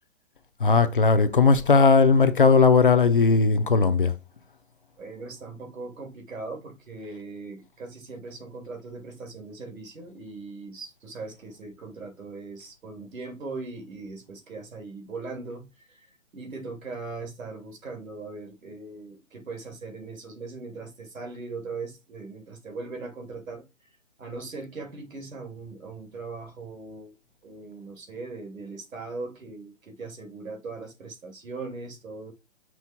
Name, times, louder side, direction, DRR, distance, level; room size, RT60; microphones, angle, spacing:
voice 1, 0.6-4.1, left 4 dB, 40° left, 0.6 m, -18 dB
voice 2, 5.0-23.9 24.2-27.2 27.4-32.3, right 3 dB, 90° right, 2.6 m, -39 dB
6.1 x 3.3 x 5.8 m
hypercardioid pair, 175°, 39 cm